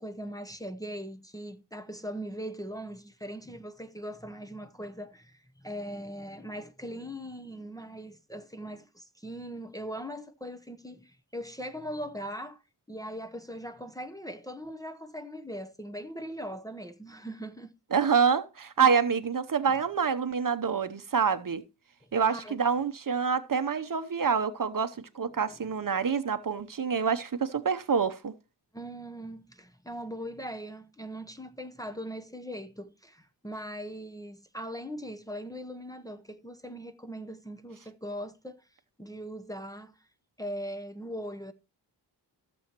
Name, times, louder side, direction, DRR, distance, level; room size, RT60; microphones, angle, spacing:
voice 1, 0.0-12.6 12.9-17.7 22.2-22.6 28.7-38.6 39.0-40.0 40.4-41.5, equal, 10° left, 0.8 m, -40 dB
voice 2, 17.9-21.6 22.1-28.3, right 6 dB, 50° right, 0.8 m, -27 dB
15.0 x 7.1 x 2.9 m
wide cardioid pair, 90°, 42 cm